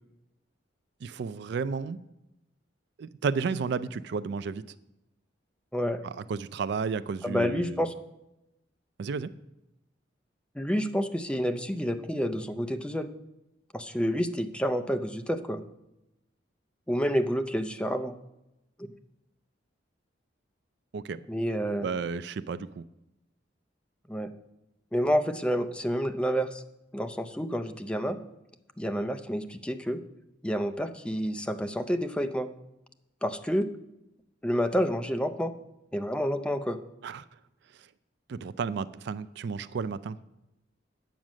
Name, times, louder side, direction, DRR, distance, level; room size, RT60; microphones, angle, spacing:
voice 1, 1.0-2.0 3.0-4.6 6.0-7.8 9.0-9.3 20.9-21.2 21.8-22.8 37.0-37.2 38.3-40.2, right 5 dB, 60° right, 16 dB, 0.3 m, -32 dB
voice 2, 7.2-7.9 10.6-13.1 13.7-15.6 16.9-18.2 21.3-21.9 24.1-24.3 24.9-26.6 26.9-28.2 28.8-30.0 30.4-32.5 33.2-33.7 34.4-35.5 35.9-36.8, equal, 5° left, 8 dB, 0.5 m, -29 dB
8.9 x 7.3 x 6.2 m, 0.92 s
head